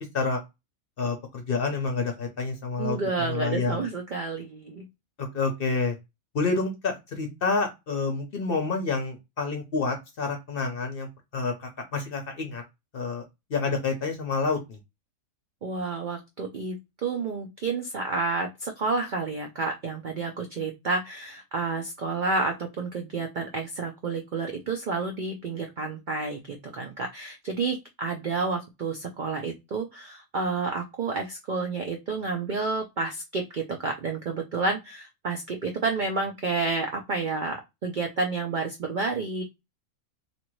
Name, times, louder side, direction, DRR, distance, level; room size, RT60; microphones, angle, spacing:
voice 1, 1.0-3.8 5.2-5.9 6.3-11.1 11.3-12.6 12.9-13.2 13.5-14.8, left 4 dB, 55° left, 4 dB, 0.7 m, -28 dB
voice 2, 2.8-4.9 15.6-39.4, right 3 dB, 90° right, 3 dB, 0.4 m, -30 dB
2.8 x 2.5 x 3.0 m, 0.22 s
omnidirectional pair, 1.5 m